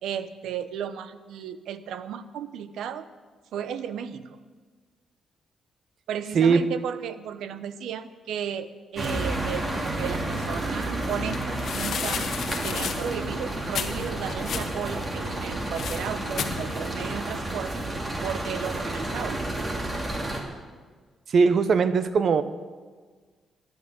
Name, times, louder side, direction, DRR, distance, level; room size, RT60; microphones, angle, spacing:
voice 1, 0.0-3.1 3.5-4.4 6.1-12.3 12.6-17.8 18.2-19.5, right 8 dB, 90° right, 13 dB, 0.8 m, -34 dB
sound 1, 9.0-20.4, right 1 dB, 25° right, 2.5 m, -31 dB
sound 2, 10.3-17.2, left 7 dB, 65° left, 1.2 m, -35 dB
voice 2, 21.3-22.4, right 5 dB, 55° right, 12 dB, 0.9 m, -20 dB
15.0 x 10.0 x 7.9 m, 1.5 s
cardioid pair, 110°, 0 cm